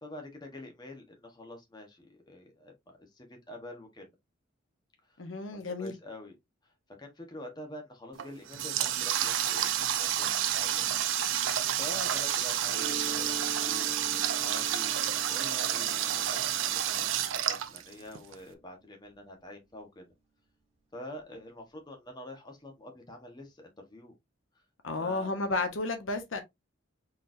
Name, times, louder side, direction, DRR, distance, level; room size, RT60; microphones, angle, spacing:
voice 1, 0.0-4.1 5.1-5.2 5.5-6.3 6.6-6.7 7.0-10.9 11.8-14.9 15.3-20.1 20.9-24.1 25.0-25.4, left 1 dB, 20° left, 1.1 m, -46 dB
voice 2, 5.2-5.9 24.8-26.4, left 3 dB, 80° left, 0.9 m, -32 dB
Water tap faucet, 8.1-18.3, right 11 dB, 85° right, 0.5 m, -30 dB
Mallet percussion, 12.7-18.3, right 4 dB, 35° right, 2.0 m, -45 dB
4.1 x 3.3 x 2.6 m
head